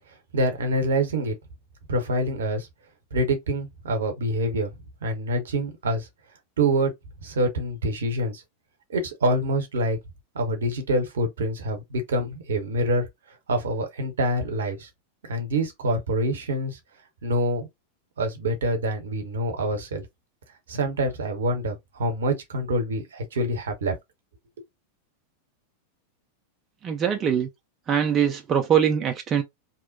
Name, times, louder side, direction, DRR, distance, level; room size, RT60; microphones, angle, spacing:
voice 1, 0.3-1.3 1.9-2.7 3.1-4.7 5.0-6.1 6.6-6.9 7.2-8.4 8.9-10.0 10.3-13.1 13.5-14.9 15.2-16.8 17.2-17.7 18.2-20.0 20.7-24.0 24.6-24.7, right 1 dB, 65° right, 0.8 m, -26 dB
voice 2, 26.8-27.5 27.9-29.4, right 8 dB, 25° right, 0.4 m, -22 dB
2.8 x 2.1 x 2.6 m
figure-of-eight pair, 90°, 0 cm